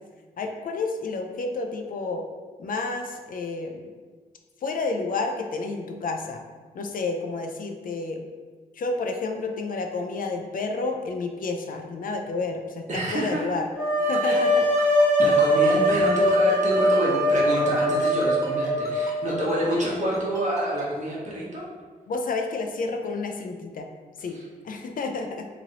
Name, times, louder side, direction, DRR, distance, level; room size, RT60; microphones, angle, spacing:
voice 1, 0.4-2.2 2.6-3.9 4.6-6.4 6.7-8.2 8.7-12.8 13.1-13.7 14.0-15.0 22.1-23.9 24.2-24.4 24.6-25.5, left 3 dB, 65° left, 4 dB, 0.4 m, -30 dB
voice 2, 12.9-13.5 14.2-14.4 15.2-21.7 24.3-24.4, right 1 dB, 50° right, -5 dB, 1.0 m, -27 dB
sound 1, 13.8-19.6, equal, 10° right, 1.4 m, -22 dB
Ringtone, 14.1-20.8, left 2 dB, 25° left, 1.1 m, -41 dB
2.9 x 2.6 x 2.8 m, 1.4 s
cardioid pair, 65°, 16 cm